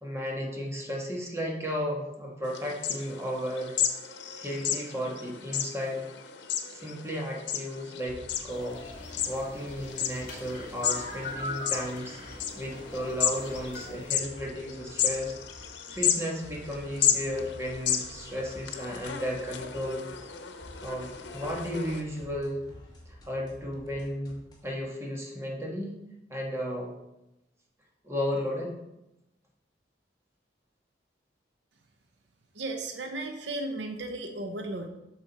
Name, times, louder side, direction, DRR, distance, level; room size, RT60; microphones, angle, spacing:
voice 1, 0.0-3.8 4.4-6.0 6.7-12.2 12.5-20.1 20.8-22.6 23.0-25.9 26.3-26.9 28.0-28.8, equal, 15° right, -1 dB, 1.5 m, -34 dB
sound 1, 2.5-22.0, left 8 dB, 90° left, 0.9 m, -33 dB
sound 2, 8.1-24.8, left 1 dB, 25° left, 1.9 m, -50 dB
sound 3, 8.5-14.1, left 3 dB, 50° left, 2.0 m, -41 dB
voice 2, 32.5-34.9, right 2 dB, 75° right, 5 dB, 0.8 m, -35 dB
8.1 x 6.3 x 4.2 m, 0.91 s
head